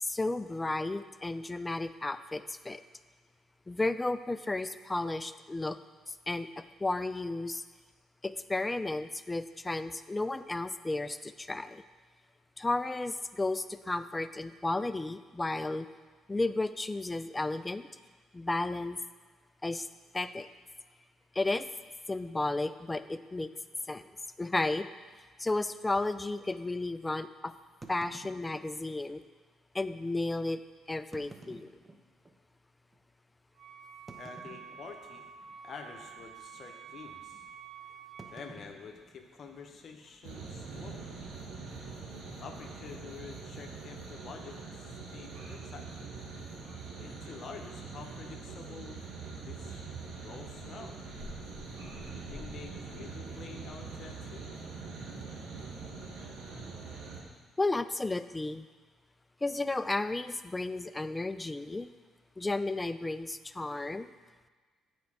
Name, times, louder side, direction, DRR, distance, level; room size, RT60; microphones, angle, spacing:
voice 1, 0.0-2.8 3.7-5.8 6.1-7.6 8.2-11.8 12.6-15.9 16.3-17.9 18.3-19.0 19.6-19.9 20.1-20.5 21.3-21.7 22.1-23.5 23.9-24.0 24.4-24.9 25.4-27.5 27.9-29.2 29.7-30.6 30.9-31.7 57.6-58.7 59.4-61.9 62.4-64.1, left 2 dB, 20° left, 12 dB, 0.4 m, -33 dB
sound 1, 23.1-23.3 24.0-24.1 24.4-24.5 25.1-25.2 27.8-29.0 29.8-29.9 31.0-32.4 32.9-33.0 34.1-35.2 35.4-35.8 36.1-36.4 38.2-39.8, right 2 dB, 25° right, 0.9 m, -52 dB
Wind instrument woodwind instrument, 33.6-38.5, right 8 dB, 60° right, 0.5 m, -49 dB
voice 2, 34.2-35.3 35.6-37.5 38.3-41.2 42.2-45.9 47.0-49.1 49.4-49.9 50.2-51.1 52.1-54.4, left 5 dB, 55° left, 4 dB, 0.8 m, -48 dB
sound 2, 40.2-57.2, right 4 dB, 75° right, 1.5 m, -43 dB
8.4 x 4.5 x 4.8 m, 1.4 s
hypercardioid pair, 55°, 0 cm